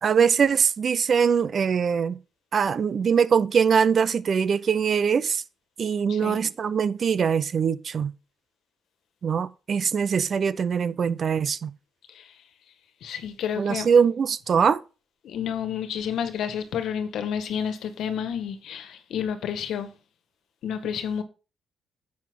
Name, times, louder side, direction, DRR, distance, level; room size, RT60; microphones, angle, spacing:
voice 1, 0.0-2.2 2.5-5.4 5.8-8.1 9.2-11.7 13.6-14.8, right 6 dB, 50° right, 0.7 m, -22 dB
voice 2, 13.0-13.9 15.2-19.9 20.6-21.2, left 8 dB, 75° left, 1.5 m, -30 dB
9.5 x 7.2 x 3.7 m
cardioid pair, 90°, 0 cm